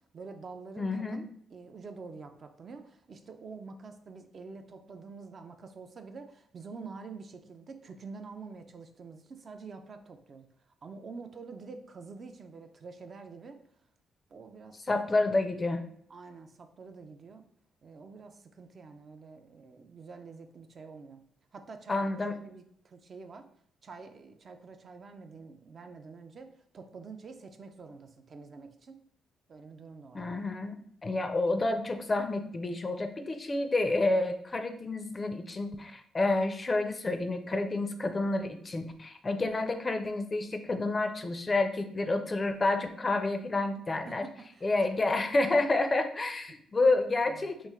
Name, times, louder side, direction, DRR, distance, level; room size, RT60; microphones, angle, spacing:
voice 1, 0.1-10.5 10.8-13.6 14.3-14.9 16.1-17.4 17.8-21.2 21.5-23.4 23.8-29.0 29.5-30.3 44.1-45.0 47.3-47.5, right 4 dB, 45° right, 7 dB, 0.4 m, -47 dB
voice 2, 0.8-1.2 14.9-15.8 21.9-22.3 30.1-44.2 44.6-47.7, left 2 dB, 25° left, 7 dB, 0.4 m, -29 dB
3.1 x 2.4 x 3.5 m, 0.66 s
cardioid pair, 90°, 0 cm